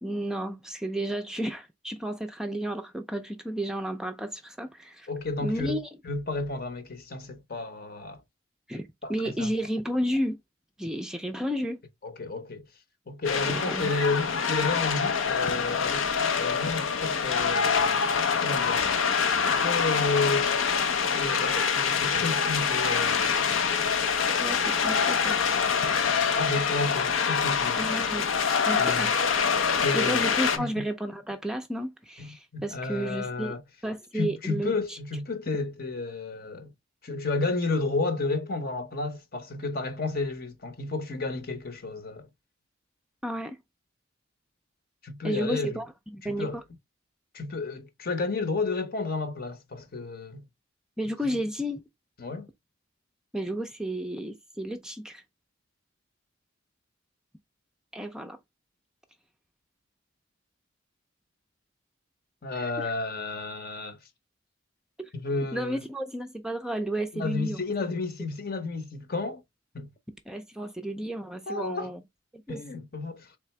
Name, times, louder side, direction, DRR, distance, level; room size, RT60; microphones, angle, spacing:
voice 1, 0.0-5.1 5.4-5.9 8.7-10.4 10.8-11.8 13.5-13.9 24.4-25.4 27.7-28.3 28.7-29.1 29.9-33.6 33.8-35.0 43.2-43.6 45.2-45.9 46.1-46.6 51.0-51.8 53.3-55.2 57.9-58.4 62.5-62.9 65.0-65.1 65.5-67.6 70.3-72.0 72.3-72.6, right 1 dB, 5° right, 0.4 m, -32 dB
voice 2, 5.1-8.2 9.0-9.5 12.0-12.6 13.1-16.1 16.3-18.0 18.4-18.9 19.4-20.6 21.2-23.4 26.2-27.9 28.7-29.1 29.8-30.3 30.6-30.8 32.2-33.6 34.1-36.7 37.0-42.3 45.0-45.8 46.2-46.6 47.3-50.5 52.2-52.5 62.4-64.0 65.1-65.8 67.1-69.4 69.7-69.9 71.5-71.9 72.5-73.3, left 3 dB, 50° left, 0.9 m, -32 dB
sound 1, 13.2-30.6, left 6 dB, 90° left, 0.8 m, -25 dB
3.7 x 3.3 x 3.2 m
head